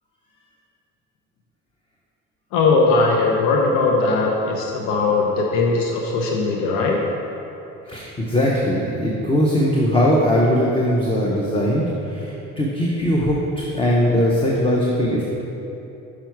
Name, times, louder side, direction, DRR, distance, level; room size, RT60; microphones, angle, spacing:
voice 1, 2.5-7.0, left 3 dB, 85° left, 0 dB, 0.7 m, -19 dB
voice 2, 7.8-15.2, equal, 15° left, -3 dB, 0.7 m, -20 dB
5.9 x 4.8 x 4.6 m, 2.9 s
supercardioid pair, 100°, 33 cm